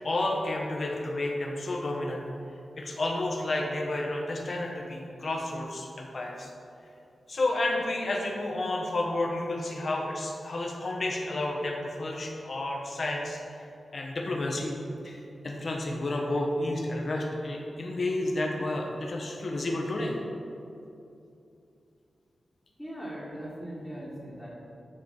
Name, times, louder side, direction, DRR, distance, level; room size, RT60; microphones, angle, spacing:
voice 1, 0.0-2.2 2.8-6.5 7.3-14.8 15.0-20.2, left 2 dB, 50° left, 0 dB, 0.8 m, -31 dB
voice 2, 22.8-24.5, equal, 10° left, -8 dB, 1.2 m, -39 dB
7.5 x 3.1 x 5.3 m, 2.6 s
wide cardioid pair, 85°, 0 cm